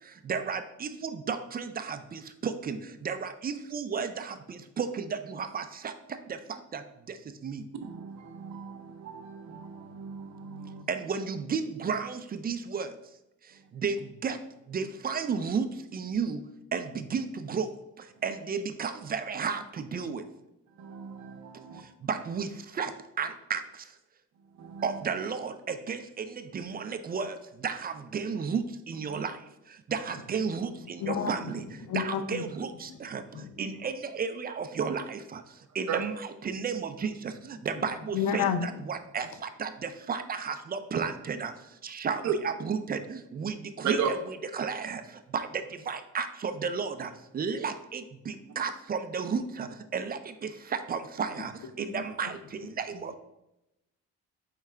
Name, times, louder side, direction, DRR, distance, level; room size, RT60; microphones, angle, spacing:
voice 1, 0.0-7.7 10.9-13.0 13.4-14.4 14.7-16.4 16.7-20.2 21.7-24.0 24.8-36.1 36.4-44.0 44.5-53.1, right 5 dB, 30° right, 0.4 m, -33 dB
voice 2, 7.8-10.8 13.5-13.6 18.1-18.2 20.7-21.8 24.3-25.1 29.1-29.2 35.9-36.0 42.2-42.3 43.8-44.1, right 7 dB, 65° right, 0.7 m, -35 dB
voice 3, 31.0-31.3 31.9-32.4 33.4-33.5 38.1-38.6, left 8 dB, 70° left, 0.6 m, -29 dB
4.7 x 3.3 x 3.3 m
cardioid pair, 90°, 30 cm